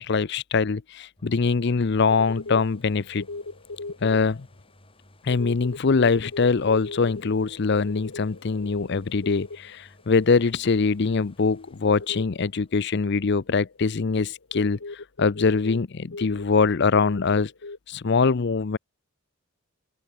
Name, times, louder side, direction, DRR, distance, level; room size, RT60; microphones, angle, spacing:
voice 1, 0.0-3.3 4.0-4.5 5.2-14.8 15.2-17.5 17.9-18.8, left 4 dB, 55° left, 0.6 m, -23 dB
sound 1, 1.2-14.9 15.4-15.5, left 1 dB, 25° left, 5.0 m, -57 dB
sound 2, 1.8-1.9 2.1-4.2 5.3-10.0 12.0-12.3 13.2-15.8 16.1-16.6 17.0-17.8, left 3 dB, 80° left, 1.4 m, -38 dB
open air
head